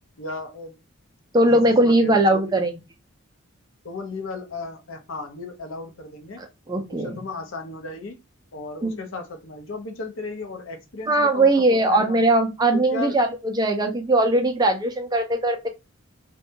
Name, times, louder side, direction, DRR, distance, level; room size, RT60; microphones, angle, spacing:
voice 1, 0.2-0.8 1.5-2.6 3.8-6.4 6.9-8.2 8.5-12.2 12.7-13.2, left 3 dB, 70° left, 0.6 m, -35 dB
voice 2, 1.3-2.7 6.4-7.2 8.8-9.0 11.1-15.7, right 1 dB, 20° right, 0.3 m, -20 dB
2.6 x 2.2 x 2.6 m
head